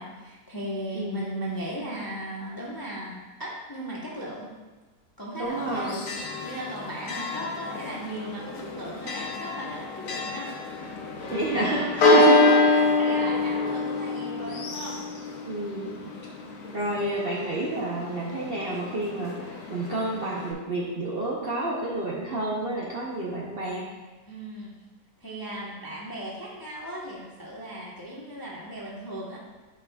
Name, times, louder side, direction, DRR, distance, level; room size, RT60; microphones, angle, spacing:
voice 1, 0.0-4.5 5.2-5.9 6.4-10.5 11.2-11.5 12.0-15.0 24.3-24.7 25.2-29.4, right 1 dB, 20° left, -5 dB, 0.7 m, -37 dB
voice 2, 5.4-6.0 11.3-12.8 15.5-15.9 16.7-23.9, right 2 dB, 45° right, -5 dB, 0.8 m, -29 dB
Church bell, 5.5-20.5, left 2 dB, 70° left, 1.3 m, -27 dB
8.6 x 5.7 x 2.3 m, 1.2 s
omnidirectional pair, 1.8 m